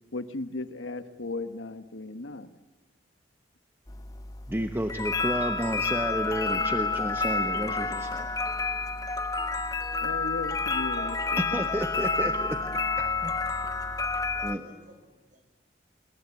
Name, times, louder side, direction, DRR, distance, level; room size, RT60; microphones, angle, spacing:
voice 1, 0.1-2.5 10.0-11.7, left 2 dB, 80° left, 11 dB, 1.2 m, -36 dB
sound 1, 3.9-14.6, left 4 dB, 20° left, 0.9 m, -29 dB
voice 2, 4.5-8.3 11.5-12.6 13.0-13.4 14.4-14.7, right 1 dB, 10° right, 6 dB, 1.0 m, -31 dB
voice 3, 14.1-15.5, equal, 45° right, 6 dB, 5.3 m, -55 dB
26.5 x 22.5 x 8.3 m, 1.3 s
head